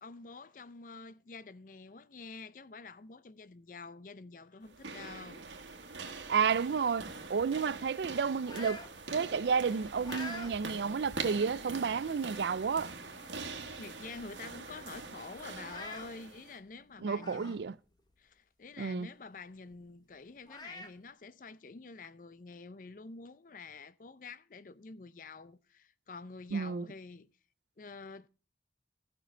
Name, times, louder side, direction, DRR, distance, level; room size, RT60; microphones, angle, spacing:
voice 1, 0.0-5.5 6.1-6.3 13.8-17.6 18.2-27.3 27.8-28.3, left 4 dB, 45° left, 0.5 m, -48 dB
sound 1, 4.6-16.6, right 4 dB, 90° right, 1.5 m, -44 dB
voice 2, 6.3-8.8 9.1-12.9 17.0-17.7 18.8-19.1 26.5-26.9, right 6 dB, 70° right, 0.4 m, -31 dB
sound 2, 7.6-8.9 9.4-10.5 11.0-11.2 12.1-12.2 12.6-12.7 13.0-13.6 13.9-14.0 14.3-14.4 15.5-16.1 17.1-17.6 18.0-18.1 19.7-19.8 20.5-20.9, left 2 dB, 25° left, 1.1 m, -46 dB
15.0 x 6.1 x 4.4 m
head